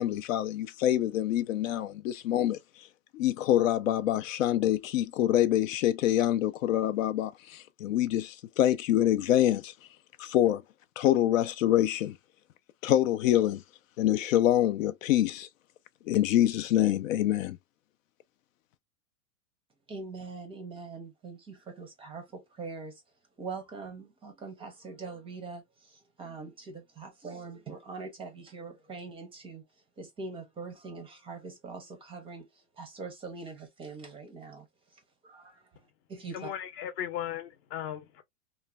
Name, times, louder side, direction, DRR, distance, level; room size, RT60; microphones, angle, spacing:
voice 1, 0.0-2.6 3.1-9.7 10.2-10.6 11.0-12.2 12.8-13.6 14.0-15.5 16.1-17.6, left 12 dB, 85° left, 0.5 m, -26 dB
voice 2, 19.9-23.0 23.4-29.6 30.0-36.5, right 4 dB, 15° right, 0.5 m, -43 dB
voice 3, 36.3-38.2, left 11 dB, 50° left, 0.7 m, -36 dB
3.1 x 2.1 x 2.3 m
supercardioid pair, 140°, 39 cm